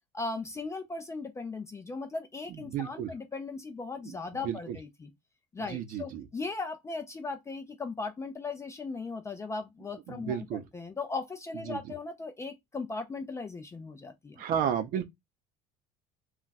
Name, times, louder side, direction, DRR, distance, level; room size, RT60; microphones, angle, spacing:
voice 1, 0.1-5.1 5.5-10.4 10.7-14.4, left 3 dB, 15° left, 0.4 m, -38 dB
voice 2, 2.5-3.1 4.0-4.1 4.4-4.8 5.7-6.3 10.1-10.7 11.7-11.8 14.4-15.1, right 9 dB, 50° right, 0.6 m, -32 dB
2.3 x 2.2 x 3.9 m
cardioid pair, 135°, 18 cm